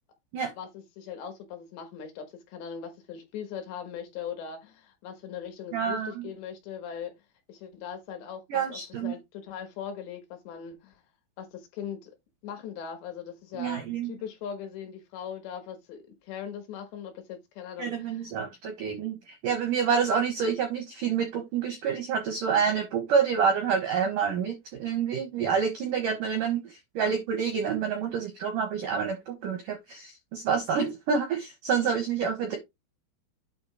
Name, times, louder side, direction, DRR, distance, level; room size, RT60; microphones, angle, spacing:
voice 1, 0.6-7.1 7.5-11.0 11.4-12.2 12.4-18.3 27.0-27.2, left 8 dB, 70° left, 3.5 m, -40 dB
voice 2, 5.7-6.3 8.5-9.1 13.5-14.1 17.8-32.6, right 6 dB, 80° right, 1.9 m, -28 dB
8.9 x 3.5 x 4.8 m
omnidirectional pair, 5.6 m